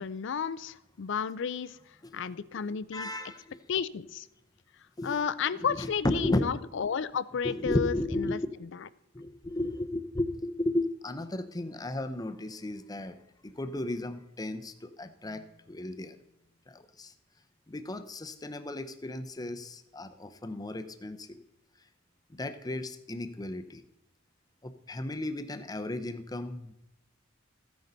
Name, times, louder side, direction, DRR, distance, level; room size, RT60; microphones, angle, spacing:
voice 1, 0.0-1.8 2.1-3.1 3.7-4.3 5.0-8.9, left 7 dB, 65° left, 17 dB, 0.4 m, -32 dB
voice 2, 2.9-3.6 5.0-5.2 5.8-6.4 7.4-8.4 9.1-13.2 13.4-16.2 16.7-17.1 17.7-21.4 22.3-23.8 24.6-26.7, left 1 dB, 20° left, 9 dB, 0.6 m, -34 dB
14.5 x 9.4 x 4.0 m, 0.86 s
head